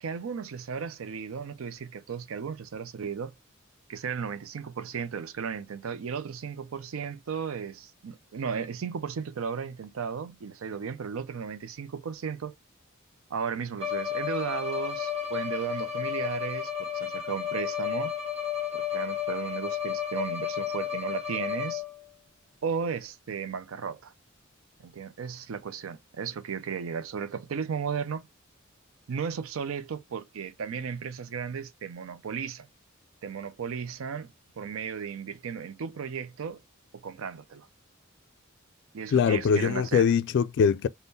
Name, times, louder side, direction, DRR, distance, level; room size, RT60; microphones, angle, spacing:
voice 1, 0.0-3.3 3.9-12.5 13.3-18.2 18.7-21.8 22.6-24.1 24.8-28.3 29.1-32.7 33.2-36.6 36.9-37.7 38.9-40.1, right 6 dB, 85° right, 0.5 m, -35 dB
Bowed string instrument, 13.8-22.1, left 9 dB, 30° right, 1.3 m, -32 dB
voice 2, 39.1-40.9, left 6 dB, 60° left, 0.3 m, -22 dB
3.6 x 2.1 x 2.6 m
head